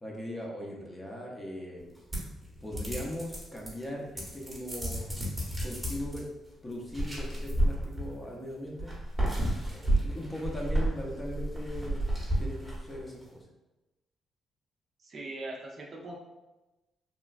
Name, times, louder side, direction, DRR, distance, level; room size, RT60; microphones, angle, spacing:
voice 1, 0.0-1.8 2.6-5.0 5.6-6.3 6.6-8.9 9.7-12.1 12.4-13.5, left 1 dB, 15° left, -1 dB, 0.6 m, -39 dB
sound 1, 2.1-3.8 4.2-6.2 6.9-8.3 8.8-13.1, right 1 dB, 10° right, 0.9 m, -31 dB
voice 2, 15.0-16.2, right 2 dB, 45° right, -1 dB, 0.5 m, -40 dB
3.0 x 2.2 x 2.4 m, 1.0 s
cardioid pair, 90°, 0 cm